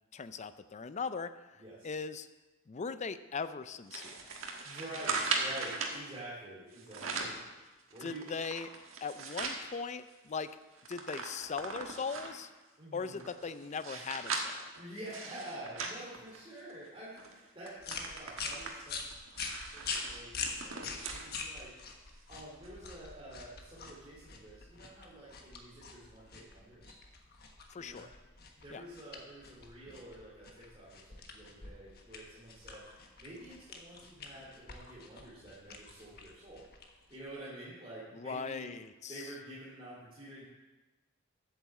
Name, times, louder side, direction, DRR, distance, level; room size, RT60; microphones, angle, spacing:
voice 1, 0.1-2.3 2.7-4.2 8.0-8.7 9.0-10.6 10.9-12.5 12.9-14.6 27.7-28.1 28.7-28.8 38.1-39.3, left 5 dB, 35° left, 12 dB, 0.4 m, -39 dB
going through the papers, 3.9-6.0 6.7-7.4 7.9-9.6 10.1-10.2 10.4-12.4 13.0-16.8 17.2-17.3 17.7-21.3 21.7-21.8 22.6-22.7, right 4 dB, 85° right, 1.5 m, -39 dB
voice 2, 4.6-7.3 7.9-8.3 12.8-13.2 14.8-19.1 19.7-22.0 22.3-27.0 27.7-28.1 28.6-36.7 37.1-38.7 39.1-40.5, right 1 dB, 25° right, -8 dB, 2.5 m, -48 dB
sound 1, 17.8-37.4, left 4 dB, 50° left, 1.3 m, -45 dB
8.4 x 7.4 x 7.3 m, 1.2 s
head